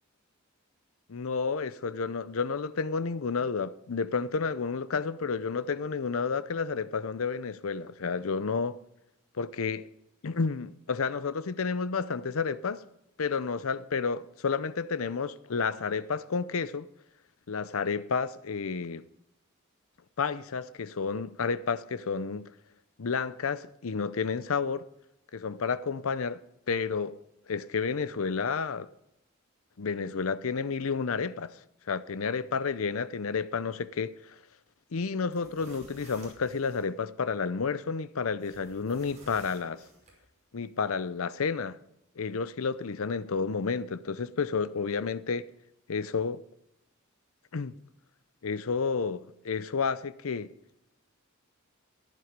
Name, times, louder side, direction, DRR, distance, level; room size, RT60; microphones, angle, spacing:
voice 1, 1.1-8.8 9.3-9.9 10.2-12.8 13.2-16.9 17.5-19.0 20.2-22.5 23.0-24.8 25.3-26.4 26.7-27.2 27.5-28.9 29.8-31.6 31.9-34.4 34.9-39.8 40.5-41.8 42.2-45.5 45.9-46.4 47.5-47.7 48.4-50.5, left 5 dB, 80° left, 0.6 m, -31 dB
sound 1, 35.2-36.9 38.4-40.2, right 2 dB, 35° right, 5.4 m, -54 dB
14.5 x 11.0 x 5.2 m
head